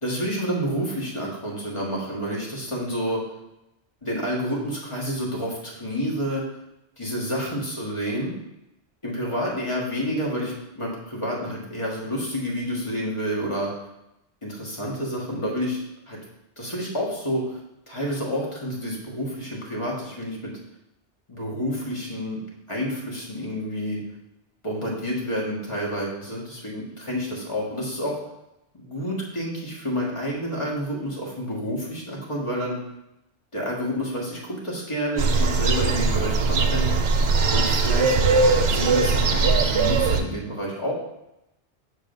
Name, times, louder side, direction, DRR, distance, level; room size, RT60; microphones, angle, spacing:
voice 1, 0.0-3.2 4.0-6.4 7.0-8.3 9.0-13.7 14.4-16.2 16.6-17.6 17.9-20.5 21.3-22.4 22.7-24.0 24.6-28.2 28.7-32.8 33.5-36.9 37.5-38.1 38.6-40.9, equal, 30° left, -4 dB, 1.7 m, -29 dB
sound 1, 35.2-40.2, right 4 dB, 70° right, 0.9 m, -20 dB
7.2 x 6.5 x 2.7 m, 0.90 s
omnidirectional pair, 1.1 m